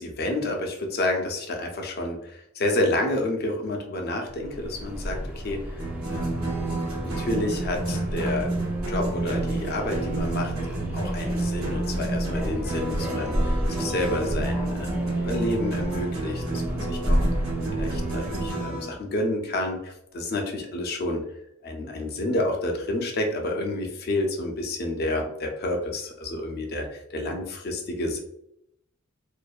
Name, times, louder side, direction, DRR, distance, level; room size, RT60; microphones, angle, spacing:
voice 1, 0.0-5.8 6.1-6.5 7.0-8.5 8.9-17.3 17.8-21.2 21.6-28.2, left 1 dB, 50° left, 3 dB, 0.5 m, -29 dB
Subway metro underground, 4.3-18.6, equal, 10° right, 0.3 m, -32 dB
sound 1, 5.8-18.9, right 2 dB, 85° right, 0.9 m, -30 dB
2.5 x 2.1 x 2.3 m, 0.79 s
head